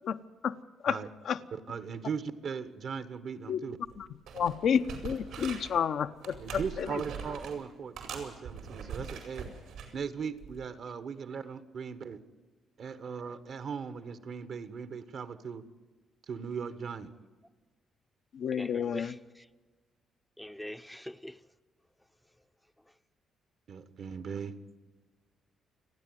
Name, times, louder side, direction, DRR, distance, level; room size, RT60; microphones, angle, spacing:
voice 1, 1.5-3.8 6.4-9.5 9.9-11.9 12.8-15.6 16.3-17.1 23.7-24.5, right 6 dB, 60° right, 1.4 m, -38 dB
sound 1, 3.8-4.0 4.3-5.8 6.2-7.6 8.0-9.9 10.4-10.6, right 6 dB, 85° right, 4.9 m, -42 dB
voice 2, 4.3-6.6 18.3-19.1, left 7 dB, 65° left, 0.8 m, -30 dB
voice 3, 18.5-19.5 20.4-21.4, left 1 dB, 5° left, 0.7 m, -43 dB
29.0 x 9.8 x 9.4 m
cardioid pair, 90°, 0 cm